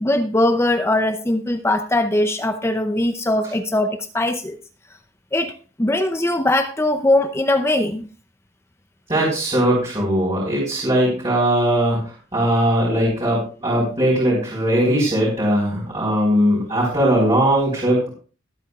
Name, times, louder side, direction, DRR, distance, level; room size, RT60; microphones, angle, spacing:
voice 1, 0.0-4.6 5.3-5.5 5.8-8.1, left 1 dB, 15° left, 7 dB, 0.6 m, -20 dB
voice 2, 9.1-12.0 12.3-18.1, right 1 dB, 25° right, -6 dB, 4.2 m, -19 dB
20.5 x 8.5 x 2.4 m, 0.37 s
head